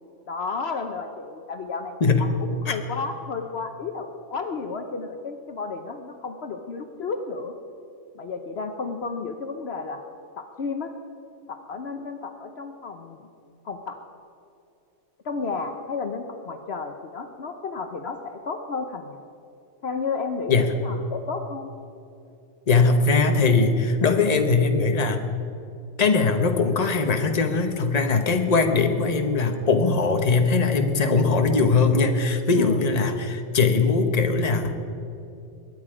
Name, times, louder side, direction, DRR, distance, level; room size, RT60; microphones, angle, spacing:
voice 1, 0.3-7.6 8.1-10.0 10.4-10.9 11.5-13.3 13.6-14.0 15.2-19.2 19.8-21.7 32.5-33.3, left 4 dB, 60° left, 6 dB, 1.0 m, -32 dB
voice 2, 22.7-25.2 26.0-34.7, left 4 dB, 35° left, 5 dB, 1.1 m, -21 dB
22.5 x 9.7 x 5.0 m, 2.8 s
omnidirectional pair, 1.2 m